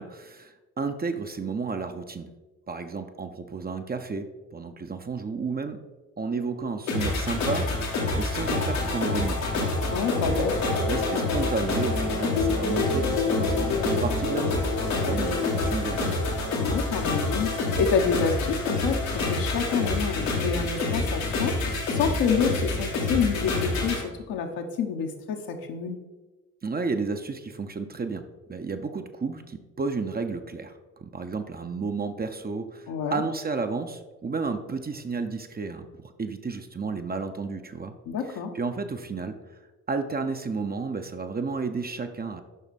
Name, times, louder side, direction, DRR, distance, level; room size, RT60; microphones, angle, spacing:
voice 1, 0.0-2.3 2.7-5.8 6.2-9.7 10.3-10.5 10.8-14.6 15.1-16.3 26.6-30.7 31.0-37.9 38.3-39.6 39.9-42.4, right 4 dB, 25° right, 7 dB, 0.8 m, -32 dB
sound 1, 6.9-24.0, left 3 dB, 80° left, 2.0 m, -27 dB
voice 2, 9.9-10.5 16.6-21.6 21.9-26.0 32.9-33.2 38.1-38.5, left 6 dB, 60° left, 4 dB, 1.2 m, -28 dB
9.1 x 6.0 x 4.2 m, 1.2 s
figure-of-eight pair, 45°, 40 cm